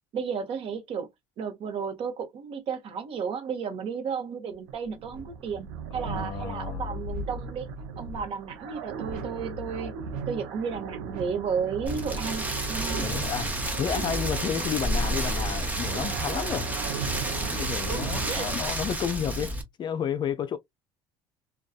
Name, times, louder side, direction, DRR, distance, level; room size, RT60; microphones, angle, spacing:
voice 1, 0.1-1.1 1.4-7.7 8.0-9.9 10.3-12.4 12.7-13.0 16.5-16.6 17.6-18.0 18.3-18.5, right 6 dB, 55° right, 0.9 m, -33 dB
sound 1, 4.5-18.7, right 5 dB, 85° right, 0.7 m, -36 dB
voice 2, 6.0-6.9 12.9-16.7 17.5-19.5 19.8-20.6, left 8 dB, 40° left, 0.4 m, -31 dB
Rain, 11.9-19.6, right 1 dB, 15° right, 0.8 m, -31 dB
2.5 x 2.3 x 2.3 m
supercardioid pair, 95°, 12 cm